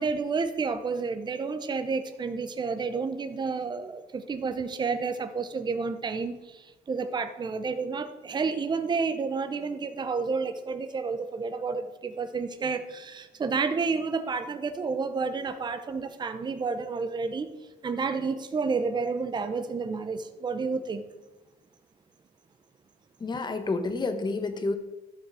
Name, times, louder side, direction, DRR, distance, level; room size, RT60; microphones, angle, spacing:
voice 1, 0.0-17.5 17.8-21.0, right 4 dB, 25° right, 9 dB, 0.8 m, -30 dB
voice 2, 23.2-24.7, left 3 dB, 25° left, 9 dB, 1.1 m, -29 dB
12.5 x 6.3 x 4.9 m, 1.1 s
cardioid pair, 110°, 17 cm